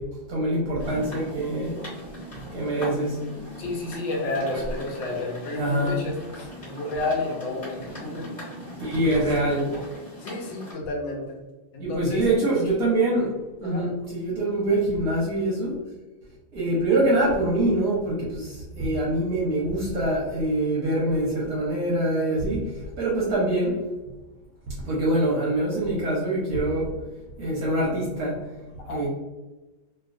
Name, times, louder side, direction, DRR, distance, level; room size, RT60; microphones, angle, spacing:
voice 1, 0.0-1.8 2.5-3.2 4.5-4.6 5.5-6.0 8.8-9.6 11.8-13.3 13.6-15.8 16.5-23.8 24.8-26.9 27.4-28.4 28.9-29.1, right 1 dB, 65° right, -5 dB, 1.0 m, -24 dB
sound 1, 0.8-10.7, equal, 25° left, 1.2 m, -39 dB
voice 2, 3.6-8.3 9.0-9.7 10.2-11.4 11.7-12.7 13.6-13.8 28.8-29.1, left 2 dB, 75° left, -1 dB, 1.4 m, -31 dB
3.1 x 2.7 x 2.4 m, 1.1 s
omnidirectional pair, 2.2 m